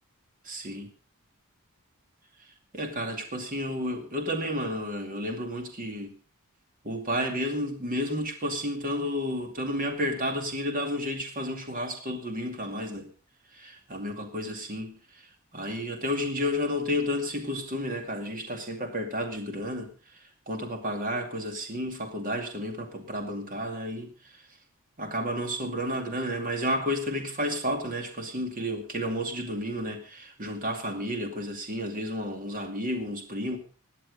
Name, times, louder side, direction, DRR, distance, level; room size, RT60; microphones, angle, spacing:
voice 1, 0.4-0.9 2.7-6.1 6.8-13.1 13.5-15.2 15.5-19.9 20.5-24.4 25.0-33.6, equal, 40° right, 5 dB, 2.4 m, -31 dB
17.5 x 11.0 x 5.2 m, 0.37 s
head